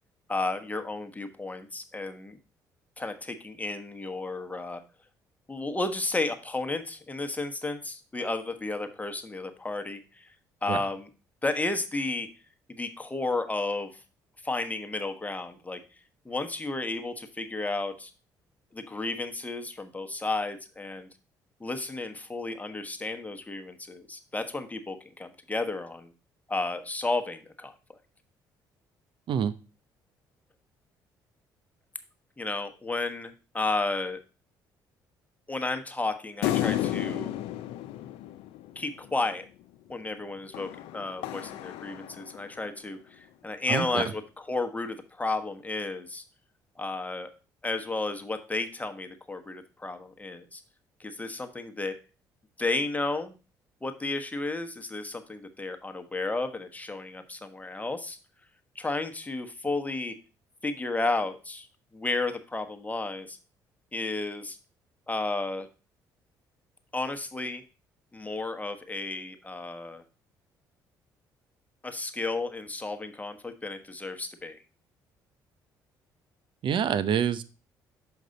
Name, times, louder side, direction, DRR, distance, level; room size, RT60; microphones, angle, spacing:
voice 1, 0.3-2.4 3.0-4.8 5.5-10.3 10.6-11.1 11.4-12.3 12.7-13.9 14.4-15.8 16.2-18.1 18.7-21.1 21.6-26.1 26.5-28.0 32.4-34.2 35.5-37.4 38.7-39.5 39.9-44.2 44.5-46.2 46.8-47.3 47.6-50.6 51.0-52.0 52.6-53.4 53.8-58.2 58.7-60.1 60.6-61.7 61.9-63.4 63.9-64.6 65.1-65.7 66.9-67.6 68.1-70.0 71.8-74.6, left 2 dB, 15° left, 6 dB, 1.1 m, -32 dB
sound 1, 36.4-39.1 40.5-42.6, left 13 dB, 70° left, 0.4 m, -32 dB
voice 2, 43.7-44.1 76.6-77.4, right 8 dB, 55° right, 13 dB, 0.6 m, -26 dB
6.3 x 5.2 x 4.0 m, 0.33 s
hypercardioid pair, 55°, 10 cm